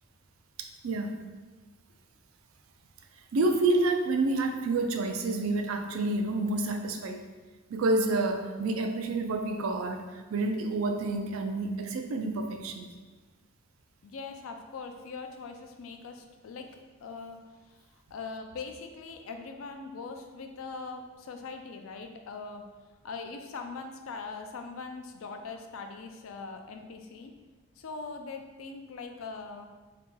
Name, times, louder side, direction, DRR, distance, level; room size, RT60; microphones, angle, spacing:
voice 1, 0.6-1.2 3.3-7.2 7.7-12.9, right 2 dB, 85° right, 5 dB, 0.4 m, -29 dB
voice 2, 14.0-16.7 17.0-17.4 17.7-22.6 23.0-27.3 27.8-29.7, left 4 dB, 80° left, 5 dB, 0.4 m, -41 dB
2.9 x 2.8 x 3.6 m, 1.3 s
head